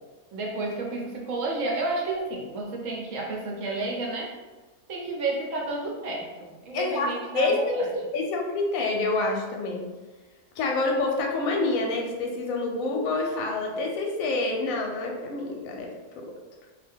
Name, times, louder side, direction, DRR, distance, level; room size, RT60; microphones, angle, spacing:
voice 1, 0.3-4.3 4.9-7.9, right 2 dB, 65° right, -1 dB, 0.9 m, -31 dB
voice 2, 6.7-7.1 7.3-7.9 8.1-9.8 10.6-15.9 16.2-16.3, left 3 dB, 70° left, 1 dB, 0.9 m, -27 dB
2.5 x 2.2 x 3.4 m, 1.2 s
omnidirectional pair, 1.6 m